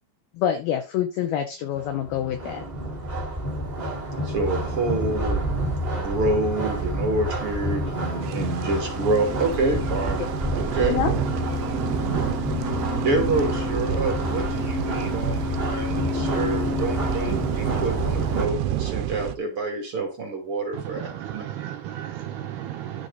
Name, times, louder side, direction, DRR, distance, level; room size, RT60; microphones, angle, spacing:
voice 1, 0.4-2.7 10.2-10.3 10.8-11.1, left 10 dB, 80° left, 7 dB, 2.2 m, -26 dB
sound 1, 1.8-18.5, right 1 dB, 10° right, 2.1 m, -29 dB
voice 2, 4.2-5.4 6.0-10.3 10.5-11.0 13.0-21.0 21.3-21.4, right 2 dB, 40° right, 1 dB, 2.2 m, -27 dB
sound 2, 8.2-19.4, right 12 dB, 90° right, 3.1 m, -30 dB
sound 3, 8.6-18.7, left 6 dB, 40° left, 0.9 m, -33 dB
voice 3, 20.7-23.1, right 11 dB, 75° right, 4 dB, 2.6 m, -34 dB
11.5 x 6.4 x 4.0 m, 0.32 s
omnidirectional pair, 5.4 m